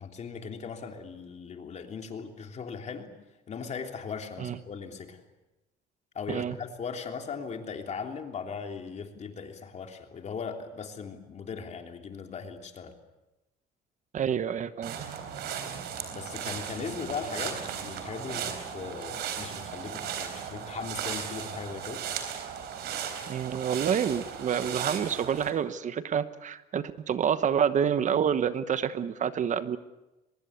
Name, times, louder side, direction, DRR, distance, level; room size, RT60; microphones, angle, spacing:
voice 1, 0.0-3.1 3.5-5.2 6.1-12.9 16.1-22.0, left 5 dB, 40° left, 4 dB, 3.3 m, -38 dB
voice 2, 14.1-15.0 23.3-29.8, right 8 dB, 45° right, 13 dB, 1.1 m, -28 dB
sound 1, 14.8-25.5, right 8 dB, 75° right, 4.0 m, -36 dB
24.0 x 21.0 x 8.3 m, 1.0 s
cardioid pair, 110°, 17 cm